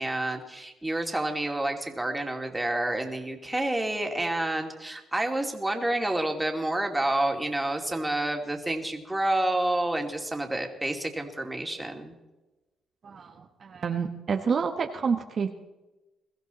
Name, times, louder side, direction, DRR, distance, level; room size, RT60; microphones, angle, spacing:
voice 1, 0.0-12.1, right 1 dB, 10° right, 3 dB, 2.7 m, -29 dB
voice 2, 13.0-15.5, right 6 dB, 50° right, 5 dB, 1.1 m, -29 dB
22.5 x 15.0 x 4.1 m, 1.1 s
cardioid pair, 90°, 0 cm